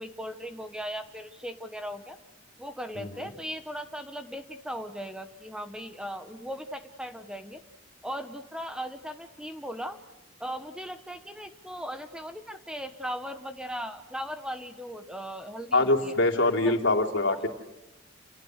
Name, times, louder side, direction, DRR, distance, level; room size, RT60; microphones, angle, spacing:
voice 1, 0.0-2.2 2.6-7.6 8.0-10.0 10.4-16.2 16.6-16.8 17.3-17.4, equal, 5° right, 7 dB, 1.2 m, -38 dB
voice 2, 15.7-17.5, left 2 dB, 65° left, 1 dB, 3.3 m, -23 dB
30.0 x 29.5 x 6.6 m, 0.95 s
head